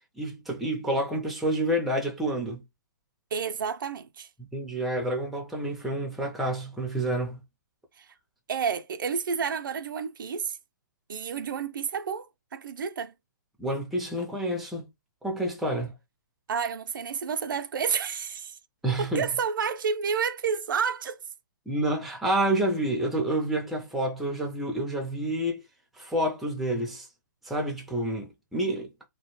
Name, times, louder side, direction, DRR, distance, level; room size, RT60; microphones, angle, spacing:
voice 1, 0.2-2.6 4.5-7.4 13.6-14.8 15.2-15.9 18.8-19.2 21.7-25.6 26.0-27.1 27.4-28.9, right 1 dB, ahead, 0.4 m, -28 dB
voice 2, 3.3-4.3 8.0-8.1 8.5-10.6 11.1-13.1 16.5-18.6 19.0-21.2, right 6 dB, 75° right, 0.4 m, -30 dB
2.2 x 2.1 x 3.0 m
hypercardioid pair, 150°, 11 cm